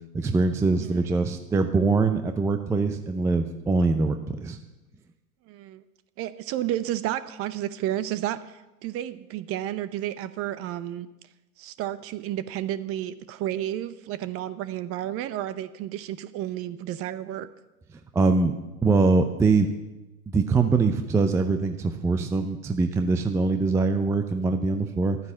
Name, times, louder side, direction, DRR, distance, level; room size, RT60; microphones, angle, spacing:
voice 1, 0.1-4.6 18.1-18.5 18.8-19.7 20.3-25.2, right 3 dB, 5° right, 7 dB, 0.4 m, -23 dB
voice 2, 5.5-5.8 6.2-11.1 11.6-17.5, right 12 dB, 30° right, 14 dB, 0.8 m, -31 dB
12.5 x 9.6 x 7.2 m, 1.0 s
hypercardioid pair, 105°, 45 cm